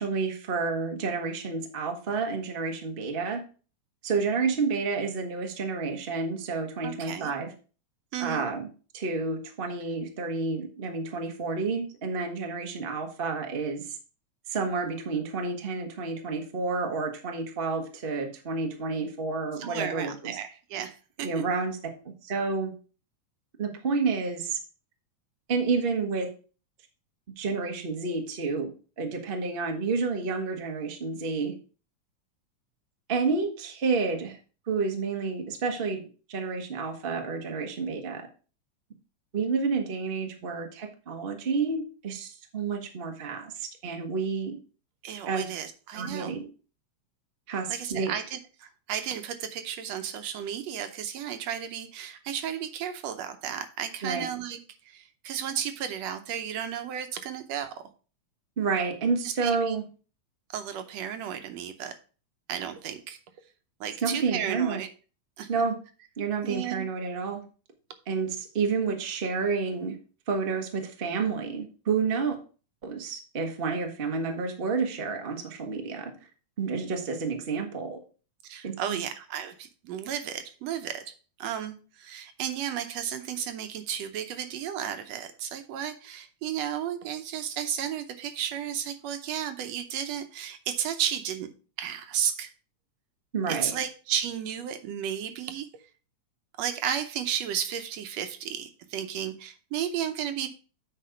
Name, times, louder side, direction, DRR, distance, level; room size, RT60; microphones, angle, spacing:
voice 1, 0.0-3.4 4.0-7.5 8.2-8.7 8.9-14.0 14.5-20.4 21.2-21.8 22.2-22.7 23.6-24.6 25.5-26.3 27.4-31.5 33.1-34.4 34.7-36.0 36.3-38.3 39.3-44.6 45.3-45.5 45.9-46.5 47.5-48.1 54.0-54.2 58.6-59.8 64.0-64.8 65.5-65.8 66.2-67.4 68.1-70.0 70.3-72.4 72.8-76.1 76.6-78.0 78.6-79.0 93.3-93.7, right 4 dB, 50° right, 3 dB, 0.6 m, -30 dB
voice 2, 6.8-7.3 8.1-8.5 19.6-21.4 45.0-46.3 47.7-54.6 54.9-57.8 59.2-59.8 60.5-62.0 62.5-63.2 63.8-64.9 65.4-65.5 66.4-66.9 78.4-91.5 91.8-92.5 93.5-95.7 96.6-100.5, right 9 dB, 70° right, 9 dB, 1.9 m, -33 dB
8.6 x 4.6 x 5.1 m, 0.37 s
omnidirectional pair, 3.3 m